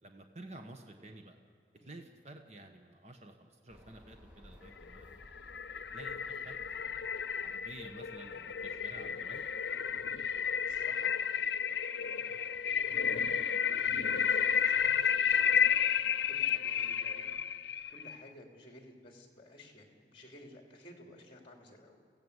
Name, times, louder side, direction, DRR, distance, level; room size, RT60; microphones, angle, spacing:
voice 1, 0.0-1.4 1.8-5.1 5.9-9.4 11.7-11.8 16.5-16.6, right 2 dB, 35° right, 5 dB, 1.3 m, -51 dB
voice 2, 1.8-2.1 10.7-11.1 12.7-12.8 13.5-17.3 17.9-22.0, left 1 dB, 30° left, 2 dB, 3.0 m, -55 dB
sound 1, 3.7-10.8, equal, 5° right, 2.1 m, -59 dB
sound 2, 4.8-18.2, left 7 dB, 70° left, 0.6 m, -32 dB
28.0 x 16.0 x 8.1 m, 2.1 s
head